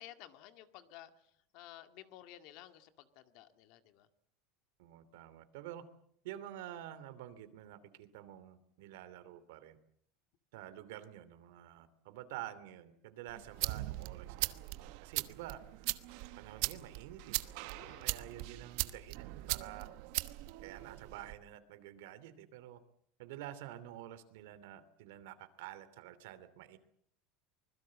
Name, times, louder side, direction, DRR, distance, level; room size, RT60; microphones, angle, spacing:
voice 1, 0.0-4.1 17.7-18.1, left 13 dB, 50° left, 8 dB, 2.0 m, -54 dB
voice 2, 4.8-5.8 6.2-9.8 10.5-14.5 15.0-15.6 16.4-17.4 17.7-19.9 20.6-22.8 23.2-26.8, right 12 dB, 75° right, 12 dB, 2.8 m, -49 dB
sound 1, 13.3-21.3, right 20 dB, 60° right, 1.1 m, -40 dB
25.0 x 21.0 x 7.6 m, 0.68 s
supercardioid pair, 165°, 0 cm